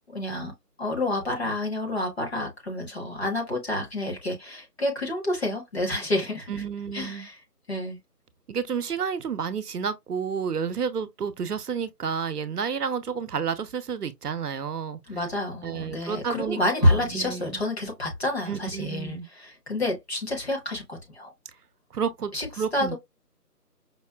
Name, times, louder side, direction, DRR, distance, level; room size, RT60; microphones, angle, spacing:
voice 1, 0.1-0.5 0.8-6.6 6.9-7.4 7.7-8.0 15.1-21.3 22.3-22.5 22.7-23.0, left 1 dB, 40° left, 1.2 m, -28 dB
voice 2, 6.5-7.3 8.5-15.0 15.6-17.6 18.5-19.3 21.9-23.0, right 6 dB, 75° right, 0.7 m, -30 dB
5.2 x 2.1 x 2.3 m
figure-of-eight pair, 170°, 48 cm